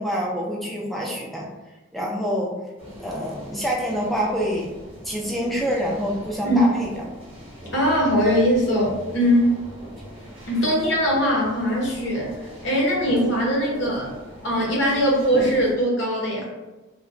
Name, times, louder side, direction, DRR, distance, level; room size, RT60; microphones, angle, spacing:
voice 1, 0.0-1.5 1.9-2.5 3.0-4.7 5.0-6.9, equal, ahead, -3 dB, 0.3 m, -26 dB
sound 1, 2.8-15.7, equal, 30° right, 0.8 m, -40 dB
voice 2, 7.7-9.6 10.5-12.3 12.6-14.1 14.4-16.4, equal, 60° left, -3 dB, 0.8 m, -21 dB
2.9 x 2.1 x 2.5 m, 1.1 s
head